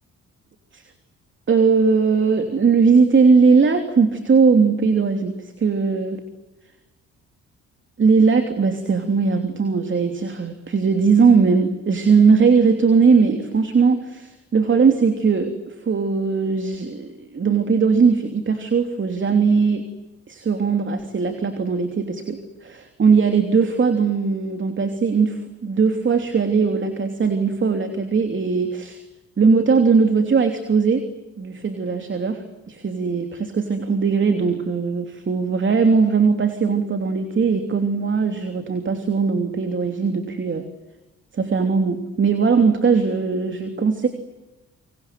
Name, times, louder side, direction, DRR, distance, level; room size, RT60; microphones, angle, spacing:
voice 1, 1.5-6.2 8.0-19.8 20.3-29.0 29.4-31.0 31.4-40.7 41.3-44.1, right 5 dB, 40° right, 7 dB, 3.2 m, -19 dB
27.5 x 26.0 x 7.8 m, 1.0 s
cardioid pair, 90°, 30 cm